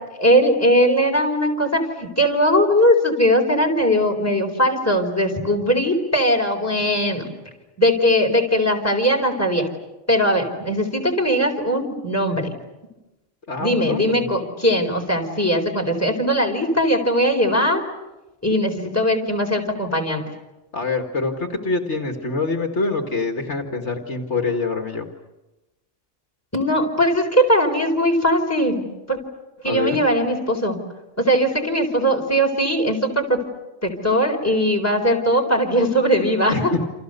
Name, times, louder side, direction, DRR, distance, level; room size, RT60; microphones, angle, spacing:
voice 1, 0.2-7.3 7.8-9.6 10.1-12.5 13.6-17.8 18.4-20.2 26.5-29.2 29.6-30.8 31.2-33.4 33.8-36.7, equal, 10° left, 1 dB, 4.4 m, -20 dB
voice 2, 13.5-14.3 20.7-25.1 29.6-30.0 36.5-36.7, left 3 dB, 65° left, 4 dB, 2.4 m, -25 dB
28.5 x 28.5 x 6.8 m, 1.0 s
omnidirectional pair, 1.3 m